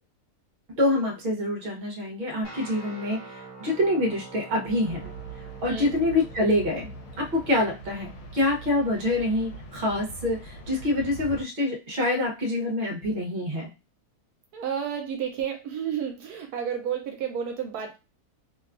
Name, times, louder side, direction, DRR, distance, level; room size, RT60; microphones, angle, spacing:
voice 1, 0.8-6.9 7.2-13.7, left 1 dB, 40° right, 0 dB, 0.9 m, -26 dB
sound 1, 2.4-11.3, right 3 dB, 65° left, 1.1 m, -47 dB
sound 2, 4.8-11.4, right 2 dB, 85° left, 1.3 m, -42 dB
voice 2, 14.5-18.0, right 8 dB, 80° right, 3 dB, 1.1 m, -31 dB
2.9 x 2.2 x 2.4 m, 0.27 s
omnidirectional pair, 1.6 m